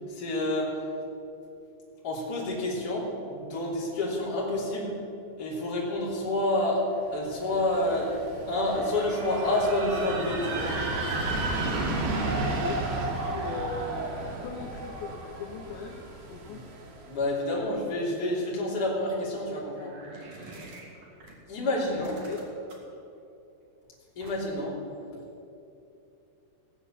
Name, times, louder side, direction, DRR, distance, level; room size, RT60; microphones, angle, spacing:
voice 1, 0.1-0.8 2.0-5.0 5.4-6.8 7.1-8.1 8.5-10.8 16.5-16.6 17.1-19.9 21.5-22.2 24.1-24.8, left 1 dB, 25° left, -5 dB, 2.8 m, -28 dB
sound 1, 7.2-17.1, right 2 dB, 70° right, 4.2 m, -32 dB
voice 2, 12.3-16.7 22.0-22.4 25.1-25.3, left 4 dB, 75° left, 3 dB, 2.7 m, -40 dB
sound 2, 19.7-21.3 21.8-22.9 24.2-24.6, right 2 dB, 50° right, 2.1 m, -47 dB
18.0 x 8.2 x 7.3 m, 2.8 s
omnidirectional pair, 5.9 m